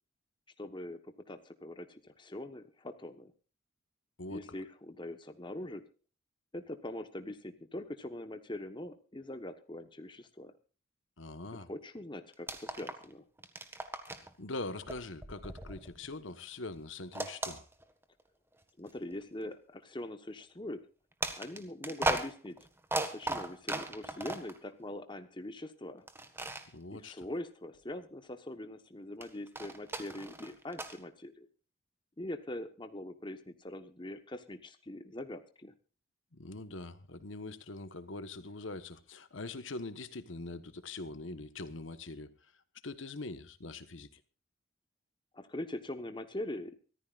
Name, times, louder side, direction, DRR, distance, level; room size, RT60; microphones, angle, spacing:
voice 1, 0.6-3.3 4.3-5.8 6.5-10.5 11.5-13.2 18.8-20.8 21.4-22.6 23.1-26.0 26.9-31.5 32.2-35.7 45.3-46.7, left 1 dB, 25° left, 8 dB, 1.2 m, -42 dB
voice 2, 11.2-11.7 14.1-17.6 26.7-27.3 36.3-42.3 42.8-44.2, left 2 dB, 75° left, 11 dB, 1.3 m, -43 dB
sound 1, 12.3-13.1 13.4-14.3 14.9-16.3 17.1-18.2 18.9-19.0 21.2-24.6 26.1-26.7 29.2-31.0, right 2 dB, 10° right, 1.5 m, -37 dB
24.5 x 14.5 x 2.5 m, 0.36 s
head